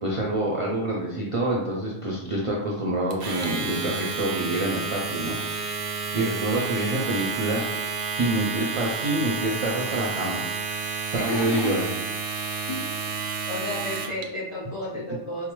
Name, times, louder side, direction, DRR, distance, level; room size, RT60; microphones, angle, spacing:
voice 1, 0.0-5.4 6.1-7.6 8.2-10.8 11.1-11.9 14.9-15.0, right 1 dB, 45° right, -4 dB, 0.4 m, -27 dB
Domestic sounds home sounds, 3.1-14.2, right 4 dB, 85° right, 0.9 m, -31 dB
voice 2, 11.1-12.0 12.7-13.2 13.5-15.5, left 2 dB, 35° left, -5 dB, 0.5 m, -32 dB
4.6 x 2.1 x 3.0 m, 0.91 s
omnidirectional pair, 1.2 m